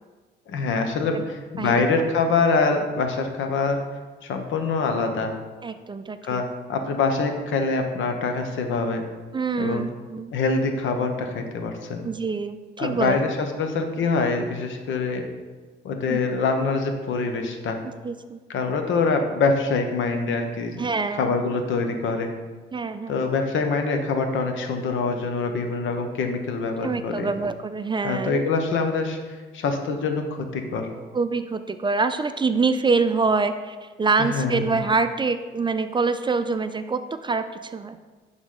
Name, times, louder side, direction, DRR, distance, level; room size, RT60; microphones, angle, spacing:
voice 1, 0.5-3.8 4.2-5.3 6.2-9.0 9.6-9.9 10.3-12.1 12.8-15.2 15.8-17.8 18.5-20.8 21.2-22.3 23.1-27.3 28.0-29.2 29.5-30.9 34.2-34.8, left 4 dB, 75° left, 5 dB, 1.0 m, -25 dB
voice 2, 5.6-6.4 9.3-10.3 12.0-13.2 16.1-16.3 18.0-18.4 20.8-21.3 22.7-23.2 26.8-28.4 31.1-38.0, right 4 dB, 25° right, 9 dB, 0.4 m, -25 dB
11.0 x 4.0 x 3.8 m, 1.4 s
cardioid pair, 90°, 20 cm